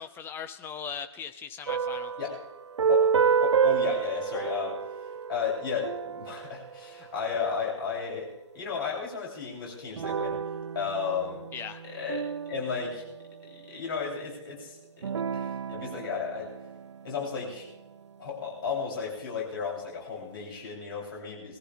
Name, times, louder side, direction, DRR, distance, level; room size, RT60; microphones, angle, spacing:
voice 1, 0.0-2.1 11.5-11.8, left 7 dB, 15° left, 9 dB, 0.9 m, -39 dB
sound 1, 1.7-7.6 10.0-13.8 15.0-17.7, right 7 dB, 70° right, 0.4 m, -30 dB
voice 2, 3.4-4.8 5.3-8.3 8.5-10.4 10.7-11.4 11.8-13.0 13.7-15.0 15.3-16.5 17.0-17.7 18.2-21.6, left 6 dB, 50° left, -3 dB, 7.8 m, -33 dB
22.0 x 14.5 x 3.6 m, 0.95 s
figure-of-eight pair, 130°, 15 cm